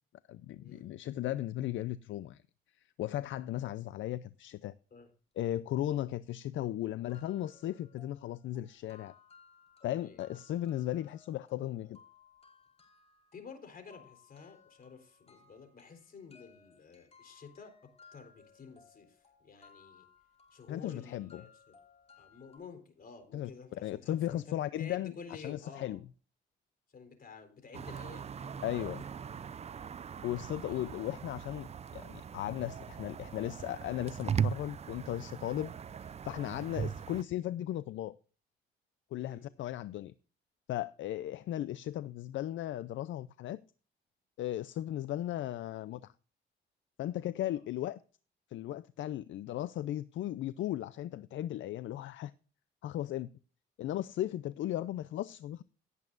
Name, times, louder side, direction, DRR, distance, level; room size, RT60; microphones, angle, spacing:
voice 1, 0.3-2.4 3.0-4.7 5.4-9.1 9.8-12.0 20.7-21.5 23.3-23.5 23.8-26.0 28.6-29.0 30.2-35.7 36.2-38.1 39.1-40.1 40.7-43.6 44.4-46.1 47.0-48.0 48.5-52.3 52.8-53.3 53.8-55.6, left 13 dB, 75° left, 0.5 m, -36 dB
sound 1, 6.6-6.7 7.1-22.6, left 5 dB, 30° left, 5.4 m, -62 dB
voice 2, 13.3-17.7 18.1-20.1 20.5-21.8 22.2-26.0 26.9-29.0 30.6-30.9 39.2-39.5 47.3-47.6, left 5 dB, 45° left, 4.0 m, -51 dB
sound 2, 27.7-37.2, right 7 dB, 30° right, 0.5 m, -39 dB
17.5 x 8.3 x 2.5 m
cardioid pair, 90°, 20 cm